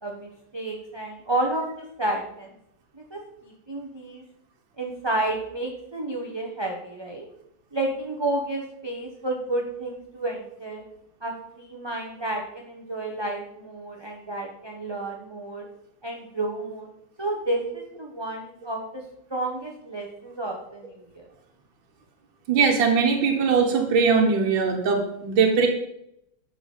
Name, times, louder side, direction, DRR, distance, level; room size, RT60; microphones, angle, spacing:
voice 1, 0.0-2.5 2.9-4.2 4.8-7.3 7.7-10.8 11.2-15.7 16.0-16.9 17.2-19.0 19.3-21.3, right 2 dB, 20° right, 0 dB, 0.9 m, -31 dB
voice 2, 22.5-25.7, right 5 dB, 80° right, 2 dB, 2.0 m, -20 dB
11.5 x 4.5 x 7.3 m, 0.77 s
omnidirectional pair, 2.1 m